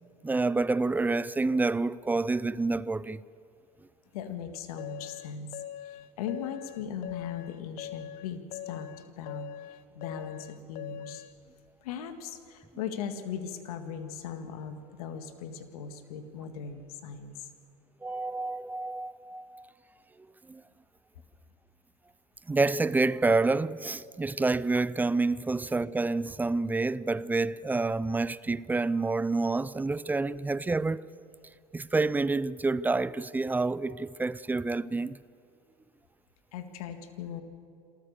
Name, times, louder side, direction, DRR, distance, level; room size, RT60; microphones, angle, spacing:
voice 1, 0.2-3.2 18.0-19.7 20.5-20.6 22.5-31.1 31.7-35.2, right 3 dB, 10° right, 0.4 m, -28 dB
voice 2, 4.1-8.9 9.2-11.2 11.8-17.5 36.5-37.4, left 7 dB, 70° left, 2.0 m, -39 dB
sound 1, 4.8-11.3, left 11 dB, 45° left, 0.5 m, -42 dB
27.0 x 14.0 x 6.9 m
hypercardioid pair, 90°, 20 cm